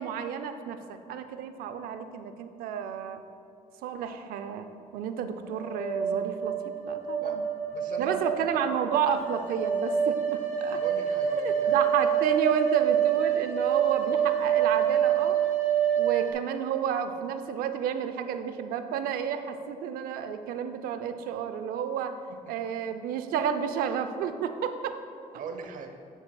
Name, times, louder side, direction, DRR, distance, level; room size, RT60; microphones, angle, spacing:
voice 1, 0.0-3.2 3.8-4.7 4.9-6.6 6.8-7.4 8.0-10.8 11.3-15.4 16.0-22.1 22.5-25.0, right 7 dB, 90° right, 9 dB, 0.5 m, -31 dB
sound 1, 5.5-16.3, right 8 dB, 65° left, 1.6 m, -27 dB
voice 2, 7.7-8.3 10.7-11.7 22.6-22.7 25.3-25.9, right 6 dB, 65° right, 6 dB, 0.8 m, -39 dB
10.5 x 7.0 x 2.3 m, 2.6 s
cardioid pair, 90°, 15 cm